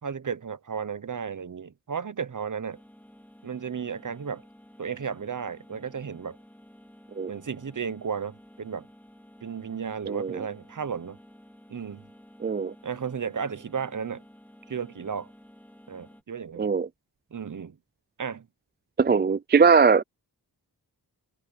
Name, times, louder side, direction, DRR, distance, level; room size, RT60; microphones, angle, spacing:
voice 1, 0.0-2.8 3.4-4.4 4.8-6.4 7.3-8.9 9.4-11.2 11.7-12.0 12.8-14.2 14.7-15.3 15.9-16.7 17.3-17.8 18.2-18.5, right 6 dB, 50° right, 1.0 m, -34 dB
sound 1, 2.7-16.2, equal, 5° left, 2.6 m, -53 dB
voice 2, 10.1-10.4 12.4-12.7 16.6-16.9 19.0-20.0, right 5 dB, 25° right, 0.4 m, -20 dB
open air
wide cardioid pair, 85°, 39 cm